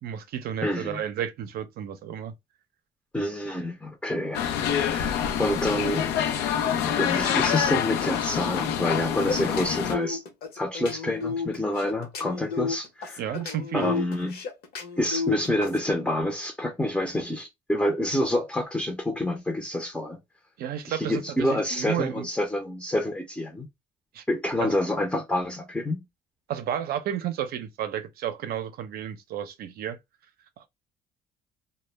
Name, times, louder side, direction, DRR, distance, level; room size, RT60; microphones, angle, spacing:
voice 1, 0.0-2.3 13.2-13.9 20.6-22.3 24.1-24.2 24.6-24.8 26.5-30.0 30.6-30.7, right 9 dB, 65° right, 0.5 m, -32 dB
voice 2, 0.6-1.0 3.1-4.4 4.7-6.1 6.7-10.2 10.5-13.2 13.7-14.4 15.0-20.2 20.9-23.7 24.3-26.0, left 1 dB, 5° left, 0.5 m, -28 dB
sound 1, 4.3-9.9, left 9 dB, 90° left, 0.5 m, -26 dB
sound 2, 8.9-15.8, left 5 dB, 65° left, 0.9 m, -33 dB
2.1 x 2.1 x 3.1 m
cardioid pair, 110°, 17 cm